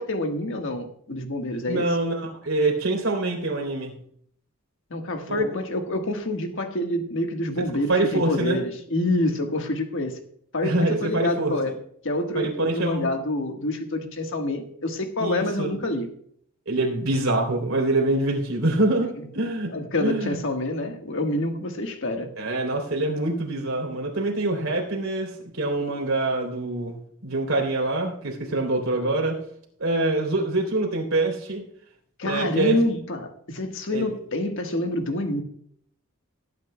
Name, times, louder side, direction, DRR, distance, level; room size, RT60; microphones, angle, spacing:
voice 1, 0.0-2.0 4.9-10.2 10.5-11.7 12.0-16.1 19.2-19.3 19.7-22.4 32.2-35.4, left 1 dB, 65° left, 5 dB, 1.4 m, -27 dB
voice 2, 1.7-3.9 5.3-5.5 7.9-8.6 10.6-11.6 12.3-13.1 15.2-15.7 16.7-19.7 20.0-20.4 22.4-27.0 27.2-29.4 29.8-31.6 32.2-32.8 33.9-34.1, right 2 dB, 70° right, 0 dB, 3.2 m, -25 dB
19.0 x 9.4 x 2.2 m, 0.64 s
head